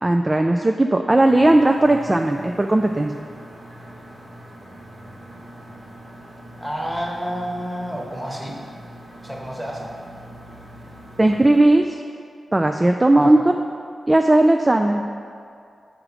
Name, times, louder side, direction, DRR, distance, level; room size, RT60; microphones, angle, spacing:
voice 1, 0.0-3.2 11.2-11.8 12.5-13.4 14.1-15.0, right 1 dB, 25° right, 4 dB, 0.3 m, -17 dB
sound 1, 1.2-11.6, equal, 70° right, 1.2 m, -42 dB
voice 2, 6.6-8.6 9.2-9.9 13.2-13.5, equal, 10° right, 0 dB, 1.1 m, -30 dB
6.1 x 4.9 x 4.9 m, 2.3 s
cardioid pair, 45°, 0 cm